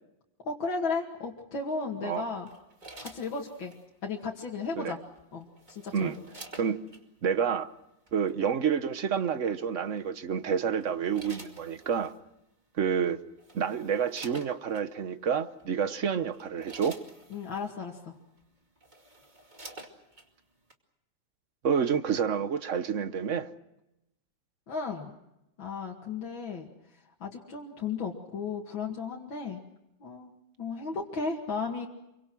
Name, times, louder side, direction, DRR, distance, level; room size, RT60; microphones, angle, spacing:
voice 1, 0.4-2.5 3.0-3.7 4.0-5.0 5.3-6.1 17.3-18.2 24.7-25.1 25.6-26.7 27.2-29.6 30.0-30.3 30.6-31.9, left 4 dB, 80° left, 3.0 m, -34 dB
sound 1, 2.5-3.8 5.2-7.0 8.1-8.3 10.0-10.3 10.8-12.2 13.0-13.1 13.4-14.9 15.6-15.8 16.2-17.7 18.4-18.5 18.8-20.3 20.7-20.8, right 2 dB, 25° right, 2.5 m, -49 dB
voice 2, 7.2-7.7 8.1-12.1 12.8-13.2 13.5-17.0 21.6-23.5, right 7 dB, 45° right, 1.2 m, -29 dB
27.5 x 24.0 x 6.2 m
omnidirectional pair, 2.1 m